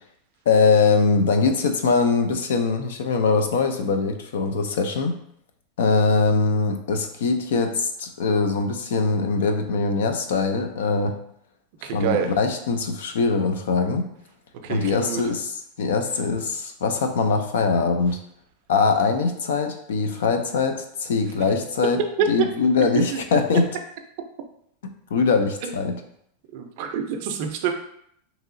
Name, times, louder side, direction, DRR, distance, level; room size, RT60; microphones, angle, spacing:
voice 1, 0.5-5.2 5.8-11.2 11.9-14.1 14.7-18.2 18.7-22.0 22.3-23.7 25.1-26.0, left 4 dB, 90° left, 6 dB, 0.4 m, -22 dB
voice 2, 11.8-12.3 14.6-15.2 22.2-22.5 23.1-23.2 25.6-25.7 26.5-27.7, right 7 dB, 50° right, 5 dB, 0.4 m, -26 dB
2.9 x 2.7 x 2.5 m, 0.71 s
supercardioid pair, 160°, 0 cm